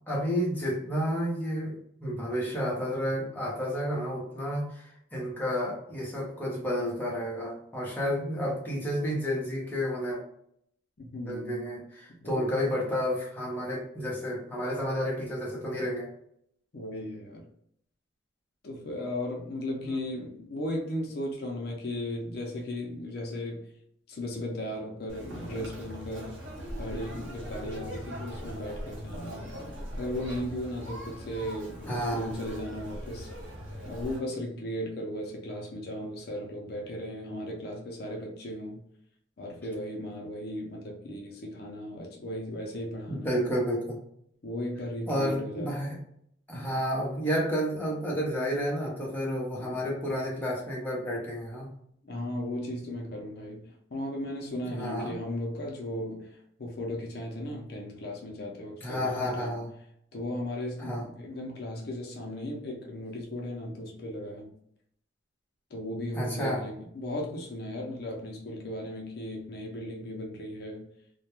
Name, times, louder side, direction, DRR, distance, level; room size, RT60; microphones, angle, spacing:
voice 1, 0.1-10.2 11.3-16.1 19.8-20.0 31.9-32.4 43.1-44.0 45.1-46.0 46.5-51.7 54.7-55.2 58.8-59.7 60.8-61.1 66.1-66.6, equal, 10° left, -4 dB, 0.7 m, -31 dB
voice 2, 11.0-11.6 12.2-12.5 16.7-17.5 18.6-23.7 24.1-26.3 26.8-33.3 33.8-38.8 39.4-43.3 44.4-45.7 46.5-46.7 49.5-49.8 52.0-59.5 60.1-64.5 65.7-70.8, left 1 dB, 55° left, 0 dB, 0.5 m, -36 dB
Conversation, 25.1-34.2, equal, 70° right, 0.9 m, -40 dB
2.2 x 2.2 x 2.9 m, 0.70 s
head